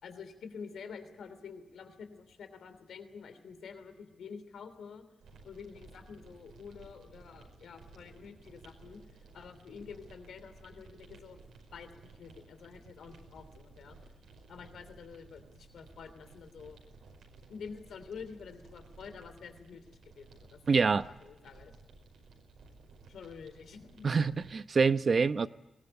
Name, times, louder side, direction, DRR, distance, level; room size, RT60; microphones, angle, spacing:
voice 1, 0.0-5.0 5.4-9.0 9.3-11.4 11.7-14.0 14.5-16.8 17.5-21.7 23.1-24.3, left 6 dB, 80° left, 9 dB, 3.0 m, -48 dB
sound 1, 5.2-24.5, right 3 dB, 90° right, 5.4 m, -56 dB
voice 2, 20.7-21.1 24.0-25.5, right 5 dB, 45° right, 12 dB, 0.8 m, -26 dB
22.0 x 20.0 x 10.0 m, 1.0 s
wide cardioid pair, 110°, 0 cm